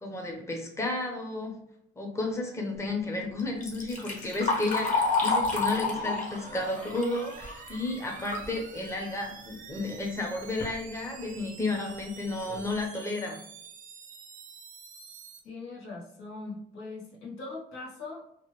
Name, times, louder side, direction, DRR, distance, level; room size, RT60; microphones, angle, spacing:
voice 1, 0.0-1.6 2.0-13.4, left 2 dB, 15° left, 1 dB, 0.7 m, -32 dB
Liquid, 3.4-8.5 8.9-9.0 9.9-10.0 10.4-10.7 11.4-11.5 12.0-12.1 12.5-12.7, left 3 dB, 40° left, 1.0 m, -30 dB
sound 1, 5.4-15.4, right 5 dB, 40° right, 0.4 m, -48 dB
voice 2, 15.4-18.2, left 3 dB, 85° left, -4 dB, 1.0 m, -41 dB
3.1 x 2.2 x 3.1 m, 0.76 s
cardioid pair, 90°, 20 cm